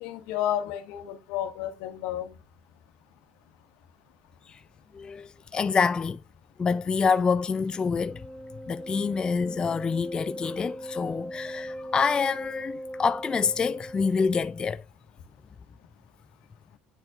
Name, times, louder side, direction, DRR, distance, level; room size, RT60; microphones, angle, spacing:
voice 1, 0.0-2.3, left 11 dB, 80° left, 1.3 m, -31 dB
voice 2, 4.9-6.2 6.6-8.2 8.7-14.8, left 5 dB, 25° left, 0.3 m, -27 dB
Wind instrument woodwind instrument, 7.6-14.7, equal, 10° right, 1.0 m, -39 dB
9.6 x 4.4 x 2.4 m
supercardioid pair, 95°, 3 cm